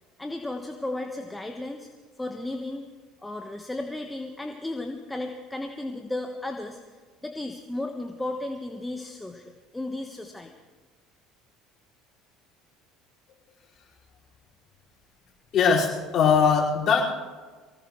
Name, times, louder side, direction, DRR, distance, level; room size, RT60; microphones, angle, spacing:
voice 1, 0.2-1.9 2.2-2.9 3.2-10.5, left 2 dB, 10° left, 4 dB, 1.3 m, -34 dB
voice 2, 15.5-17.0, left 6 dB, 50° left, -4 dB, 5.1 m, -20 dB
24.0 x 17.5 x 3.2 m, 1.4 s
hypercardioid pair, 70°, 0 cm